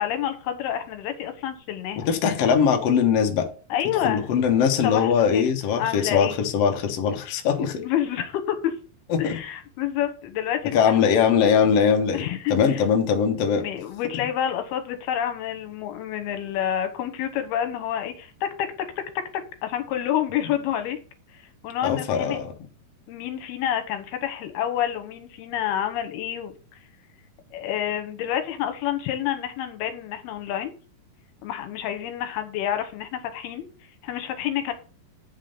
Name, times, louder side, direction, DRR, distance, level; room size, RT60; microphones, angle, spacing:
voice 1, 0.0-2.1 3.7-4.2 4.8-5.4 5.7-6.4 7.8-8.7 9.2-11.1 12.1-12.8 13.6-18.7 19.3-21.0 21.6-22.4 23.1-26.5 27.5-30.7 31.4-33.7 34.0-34.7, left 10 dB, 80° left, 3.0 m, -28 dB
voice 2, 2.0-3.5 4.0-7.8 9.1-9.3 10.7-13.6 21.8-22.5, left 7 dB, 60° left, 1.6 m, -21 dB
8.2 x 5.6 x 5.3 m
omnidirectional pair, 4.5 m